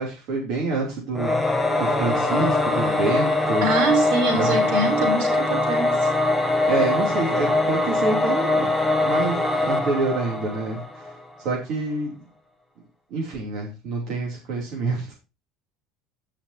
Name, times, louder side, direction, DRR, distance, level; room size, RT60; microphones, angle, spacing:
voice 1, 0.0-3.7 4.3-4.5 6.6-8.7 9.0-11.0 11.4-12.1 13.1-15.1, right 3 dB, 50° right, 2.9 m, -27 dB
Singing / Musical instrument, 1.1-11.2, left 2 dB, ahead, 0.9 m, -22 dB
voice 2, 3.6-6.1, right 3 dB, 70° right, 4.0 m, -24 dB
15.0 x 5.7 x 2.8 m
cardioid pair, 175°, 0 cm